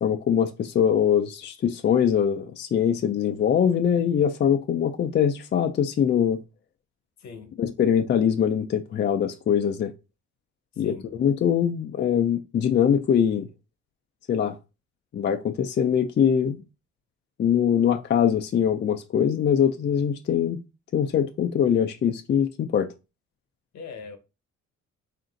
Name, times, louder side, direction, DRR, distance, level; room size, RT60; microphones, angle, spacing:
voice 1, 0.0-6.4 7.6-9.9 10.8-13.5 14.3-14.6 15.1-16.6 17.4-20.6 20.9-22.9, left 8 dB, 35° left, 0.4 m, -23 dB
voice 2, 7.2-7.5 10.8-11.0 23.7-24.2, left 5 dB, 65° left, 0.9 m, -40 dB
3.6 x 2.5 x 3.8 m
cardioid pair, 90°, 30 cm